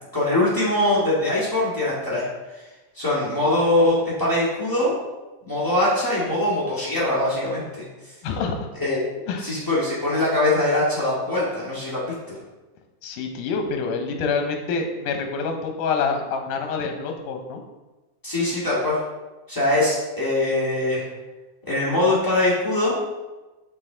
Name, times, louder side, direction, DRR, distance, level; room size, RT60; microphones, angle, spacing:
voice 1, 0.1-2.2 2.9-4.9 5.4-7.8 8.8-9.1 9.4-12.4 18.2-19.0 19.5-21.1 21.6-22.9, left 1 dB, 15° left, -9 dB, 0.7 m, -22 dB
voice 2, 8.2-8.6 9.3-9.5 13.0-17.6, left 5 dB, 85° left, 4 dB, 2.3 m, -26 dB
6.3 x 4.2 x 3.8 m, 1.1 s
omnidirectional pair, 3.6 m